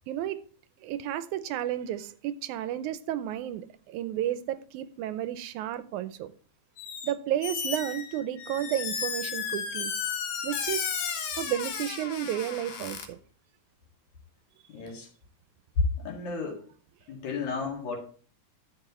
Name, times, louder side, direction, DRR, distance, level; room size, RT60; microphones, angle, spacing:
voice 1, 0.1-0.4 0.8-6.3 7.0-9.9 10.4-11.1 11.4-13.2, right 11 dB, 80° right, 2.0 m, -32 dB
Squeak, 6.8-7.1 7.4-13.1, left 7 dB, 80° left, 2.8 m, -34 dB
voice 2, 14.7-15.1 15.8-16.6 17.1-18.0, left 4 dB, 65° left, 3.4 m, -31 dB
11.5 x 7.3 x 3.1 m
omnidirectional pair, 3.5 m